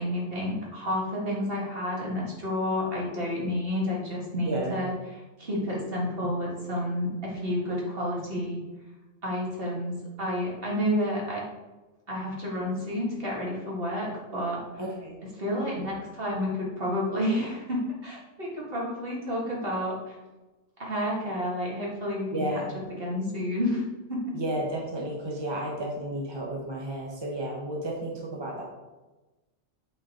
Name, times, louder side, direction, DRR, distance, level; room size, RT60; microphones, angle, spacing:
voice 1, 0.0-8.6 9.2-11.4 12.1-14.7 15.4-20.2 20.8-22.6 23.0-24.4, left 1 dB, 45° right, -4 dB, 2.1 m, -30 dB
voice 2, 4.4-4.9 14.8-15.2 22.3-22.8 24.3-28.6, right 1 dB, 20° right, -2 dB, 0.9 m, -32 dB
8.2 x 4.4 x 3.8 m, 1.1 s
omnidirectional pair, 1.4 m